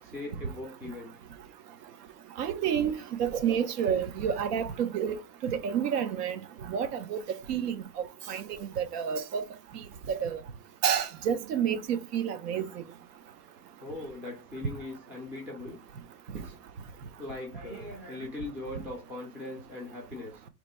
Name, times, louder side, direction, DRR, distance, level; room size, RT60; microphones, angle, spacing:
voice 1, 0.0-1.1 12.5-12.9 13.8-15.8 16.3-16.6 17.2-20.5, left 2 dB, 5° right, 0.3 m, -40 dB
voice 2, 2.4-2.9 3.2-5.2 5.4-6.4 6.7-7.2 7.5-7.8 8.3-9.4 10.1-10.4 10.8-12.7, right 8 dB, 75° right, 0.8 m, -29 dB
2.9 x 2.6 x 4.2 m
supercardioid pair, 150°, 48 cm